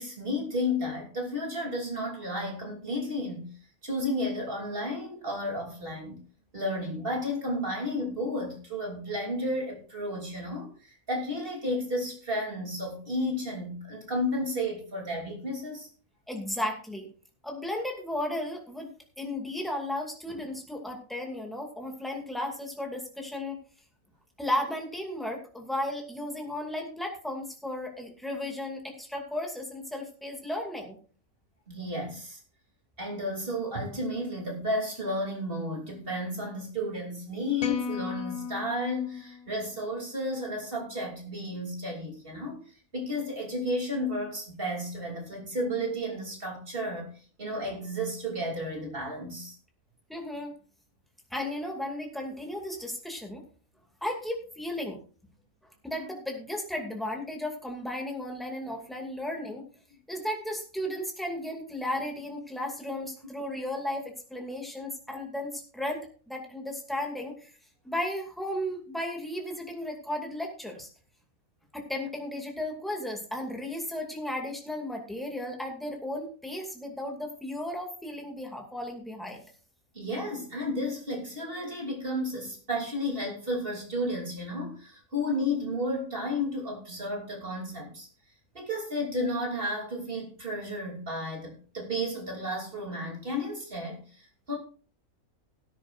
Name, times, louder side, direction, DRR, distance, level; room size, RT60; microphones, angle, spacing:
voice 1, 0.0-3.5 3.8-6.2 6.5-15.9 31.7-32.4 33.0-47.1 47.4-49.5 59.3-59.4 79.9-88.1 88.5-94.6, left 1 dB, 35° right, 0 dB, 3.3 m, -32 dB
voice 2, 16.3-17.1 17.4-18.9 19.2-23.6 24.4-31.0 50.1-50.5 51.3-53.4 54.0-55.0 55.8-59.6 60.1-67.5 67.8-70.9 71.7-79.4, left 1 dB, ahead, 1 dB, 2.3 m, -34 dB
sound 1, 37.6-40.0, left 7 dB, 75° left, 1.4 m, -36 dB
18.0 x 10.0 x 2.5 m, 0.40 s
omnidirectional pair, 1.5 m